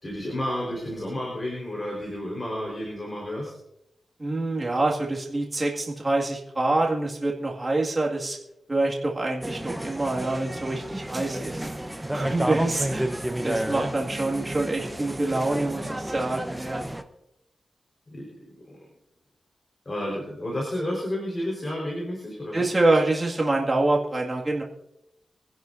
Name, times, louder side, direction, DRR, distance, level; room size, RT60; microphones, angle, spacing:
voice 1, 0.0-3.5 12.2-12.4 18.1-18.3 18.7-18.8 19.8-22.7, left 1 dB, 35° left, -2 dB, 4.4 m, -31 dB
voice 2, 4.2-8.4 8.7-11.6 12.1-13.1 13.4-16.8 22.5-24.6, right 2 dB, 30° right, -2 dB, 2.1 m, -26 dB
sound 1, 9.4-17.0, right 1 dB, 10° right, 1.0 m, -31 dB
24.5 x 11.0 x 2.7 m, 0.83 s
wide cardioid pair, 80°, 0 cm